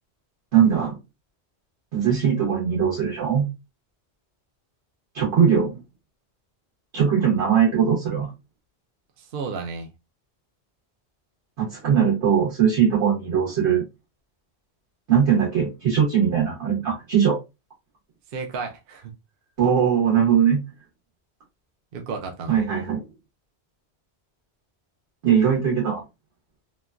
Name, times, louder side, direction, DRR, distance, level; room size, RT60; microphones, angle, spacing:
voice 1, 0.5-1.0 1.9-3.5 5.1-5.8 6.9-8.3 11.6-13.8 15.1-17.4 19.6-20.6 22.5-23.0 25.2-26.0, right 8 dB, 85° right, 1.4 m, -20 dB
voice 2, 9.2-9.9 18.3-19.1 21.9-22.6, right 4 dB, 60° right, 0.7 m, -33 dB
3.1 x 2.2 x 2.3 m
omnidirectional pair, 1.1 m